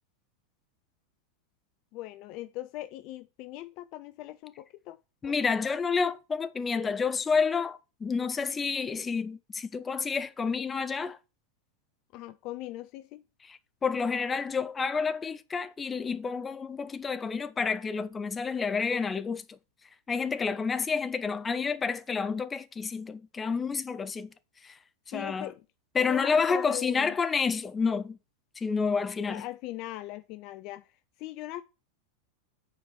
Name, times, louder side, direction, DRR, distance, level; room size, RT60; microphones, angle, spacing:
voice 1, 1.9-5.0 5.2-5.5 12.1-13.2 25.1-25.6 26.1-27.1 29.3-31.6, left 15 dB, 40° left, 0.4 m, -40 dB
voice 2, 5.2-11.2 13.5-19.6 20.1-24.3 24.6-24.8 25.1-25.5 25.9-28.2 28.6-29.5, left 5 dB, 15° left, 0.8 m, -29 dB
7.6 x 4.5 x 7.0 m
figure-of-eight pair, 90°, 0 cm